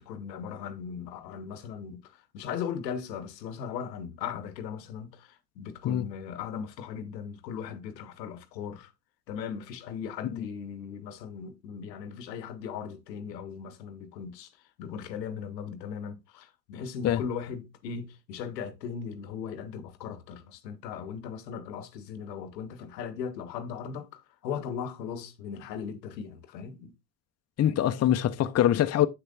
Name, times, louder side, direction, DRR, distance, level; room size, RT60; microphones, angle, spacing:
voice 1, 0.0-8.9 9.3-14.5 14.8-26.9, left 7 dB, 90° left, 0.9 m, -38 dB
voice 2, 27.6-29.1, left 11 dB, 35° left, 0.6 m, -24 dB
7.5 x 6.5 x 2.3 m
hypercardioid pair, 65°, 49 cm